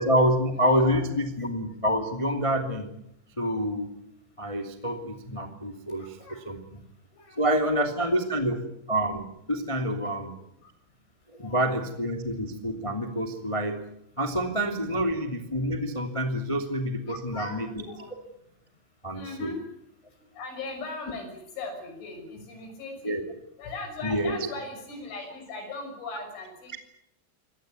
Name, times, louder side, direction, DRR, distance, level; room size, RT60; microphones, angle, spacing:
voice 1, 0.0-2.9 3.4-3.9 4.4-6.2 6.4-6.6 7.4-8.6 8.9-10.3 11.3-13.8 14.2-17.8 19.0-19.5 23.0-23.2 24.0-24.5, equal, 15° left, 5 dB, 1.0 m, -27 dB
voice 2, 6.0-6.4 7.1-7.7 8.2-8.3 9.8-9.9 11.3-11.6 17.1-18.1 19.1-19.6 20.4-23.2 23.6-26.8, left 3 dB, 70° left, 5 dB, 8.6 m, -39 dB
26.5 x 18.5 x 9.6 m, 0.79 s
omnidirectional pair, 5.7 m